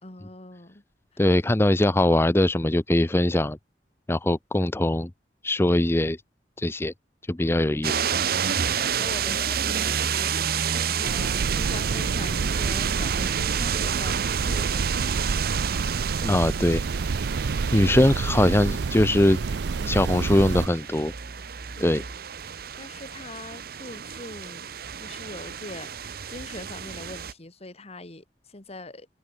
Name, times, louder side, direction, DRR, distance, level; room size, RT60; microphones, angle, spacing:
voice 1, 0.0-0.8 7.4-7.9 8.5-14.2 14.4-15.0 21.7-22.1 22.5-29.1, left 2 dB, 35° left, 2.1 m, -42 dB
voice 2, 1.2-3.6 4.1-5.1 5.4-6.2 6.6-6.9 7.3-8.1 16.2-16.8 17.7-19.4 19.8-21.1 21.8-22.0, left 1 dB, 15° left, 0.6 m, -21 dB
sound 1, 7.8-27.3, right 8 dB, 60° right, 0.9 m, -30 dB
sound 2, 11.0-20.7, right 4 dB, 75° right, 0.5 m, -28 dB
open air
head